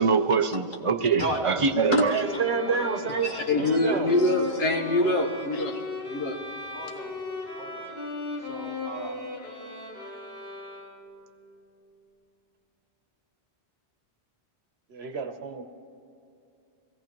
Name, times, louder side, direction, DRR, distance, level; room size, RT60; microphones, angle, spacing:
voice 1, 0.0-2.1, right 4 dB, 40° right, 0.5 m, -23 dB
voice 2, 1.2-3.4 3.9-4.0 5.0-5.3 6.7-7.2 7.5-7.9 8.4-9.1, right 1 dB, 25° right, 3.4 m, -37 dB
voice 3, 1.9-4.1 14.9-15.7, right 5 dB, 85° right, 1.2 m, -29 dB
sound 1, 2.0-11.2, left 2 dB, 55° left, 4.3 m, -37 dB
voice 4, 3.2-5.8 6.1-6.4, left 2 dB, 75° left, 1.5 m, -25 dB
22.5 x 17.0 x 3.0 m
omnidirectional pair, 1.1 m